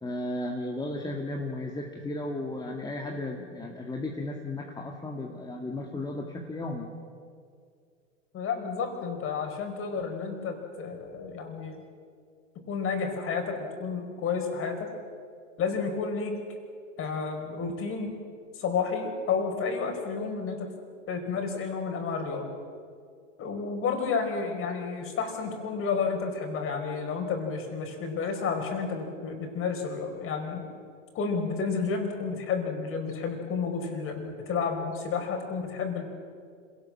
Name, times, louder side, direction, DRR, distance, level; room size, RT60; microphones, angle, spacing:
voice 1, 0.0-6.9, left 2 dB, 10° left, 0 dB, 2.0 m, -34 dB
voice 2, 8.3-11.8 12.7-14.9 15.6-16.3 17.0-18.1 18.5-20.7 21.1-22.5 23.4-30.6 31.1-36.0, left 5 dB, 35° left, 4 dB, 4.7 m, -31 dB
26.0 x 18.0 x 7.6 m, 2.2 s
hypercardioid pair, 105°, 39 cm